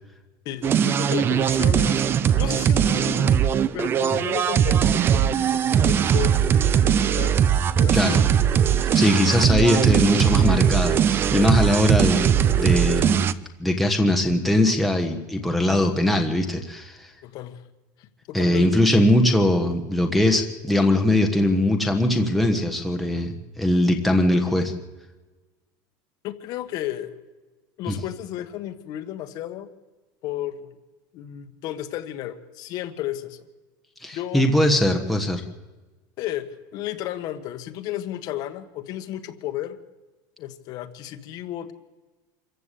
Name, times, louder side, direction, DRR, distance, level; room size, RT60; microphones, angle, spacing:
voice 1, 0.4-2.0 2.4-3.4 3.7-6.3 6.7-7.4 7.8-8.3 9.0-9.1 17.2-17.6 18.0-18.8 26.2-27.2 27.8-29.7 30.2-30.7 31.1-33.4 34.1-34.5 36.2-36.5 36.7-39.8 40.4-41.7, left 12 dB, 40° left, 8 dB, 1.4 m, -33 dB
sound 1, 0.6-13.3, right 8 dB, 20° right, 0.6 m, -20 dB
voice 2, 7.9-8.2 8.8-13.2 13.6-17.1 18.3-24.7 27.9-28.0 34.0-35.4, left 1 dB, ahead, 2 dB, 1.3 m, -21 dB
26.0 x 15.0 x 8.4 m, 1.2 s
supercardioid pair, 175°, 11 cm